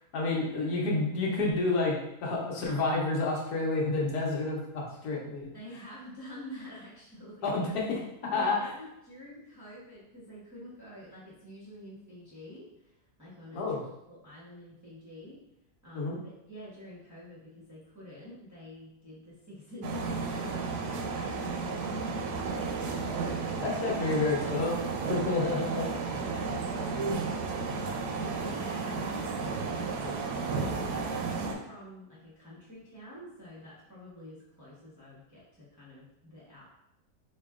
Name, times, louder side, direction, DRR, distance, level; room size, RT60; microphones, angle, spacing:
voice 1, 0.1-5.5 7.4-8.0 8.3-8.6 13.5-13.8 15.9-16.2 23.6-24.8 25.1-25.9, left 3 dB, 75° left, -3 dB, 1.3 m, -29 dB
voice 2, 5.5-7.5 8.2-12.9 13.2-13.8 14.1-15.4 15.8-22.8 26.1-27.2 27.7-30.0 30.6-36.6, equal, 15° right, -9 dB, 0.7 m, -47 dB
sound 1, 19.8-31.6, right 4 dB, 85° right, 1.1 m, -33 dB
4.3 x 2.8 x 2.3 m, 0.85 s
omnidirectional pair, 1.7 m